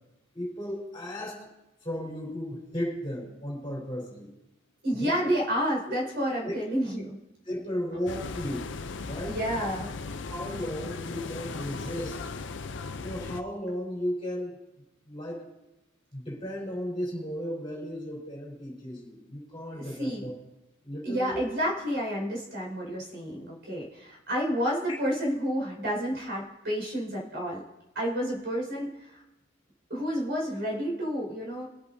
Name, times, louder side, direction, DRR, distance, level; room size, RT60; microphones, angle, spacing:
voice 1, 0.3-1.5 1.8-4.3 4.9-5.3 6.4-6.5 7.4-8.6 9.0-9.7 10.3-12.3 13.0-14.6 15.1-15.5 16.1-20.3 20.8-21.4, equal, 25° left, -3 dB, 4.4 m, -35 dB
voice 2, 4.8-7.2 9.2-9.9 19.7-20.3 21.0-27.6 27.9-29.2 29.9-31.7, equal, 55° right, -3 dB, 5.2 m, -30 dB
sound 1, 8.1-13.4, left 4 dB, 60° left, 0.5 m, -37 dB
23.5 x 8.3 x 2.7 m, 0.96 s
head